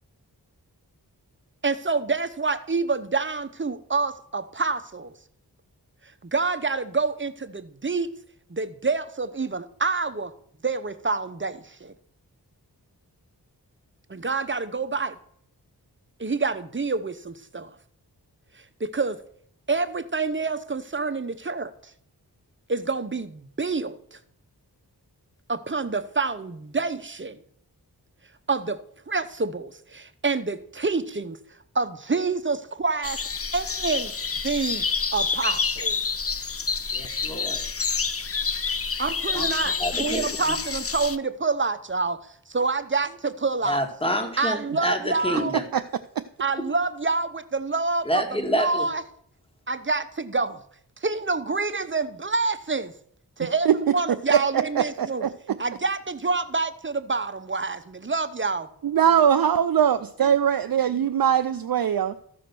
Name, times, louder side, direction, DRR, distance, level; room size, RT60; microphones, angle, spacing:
voice 1, 1.6-5.1 6.2-8.1 8.5-10.3 10.6-11.9 14.1-15.2 16.2-17.7 18.8-19.2 19.7-21.7 22.7-24.2 25.5-27.4 28.5-28.8 29.1-31.4 31.7-33.2 33.5-34.1 34.4-36.0 39.0-42.2 42.5-43.8 44.4-45.6 46.4-49.0 49.7-50.6 51.0-52.9 53.4-55.3 55.6-58.7, right 4 dB, 30° right, 0.9 m, -27 dB
sound 1, 33.0-41.2, left 5 dB, 35° left, 0.7 m, -28 dB
voice 2, 36.9-37.6 39.3-39.5 39.8-40.6 43.7-45.6 48.1-48.9, equal, 15° left, 2.0 m, -28 dB
voice 3, 54.8-55.3 58.8-62.1, right 9 dB, 60° right, 0.5 m, -21 dB
14.0 x 5.0 x 6.0 m
cardioid pair, 45°, 41 cm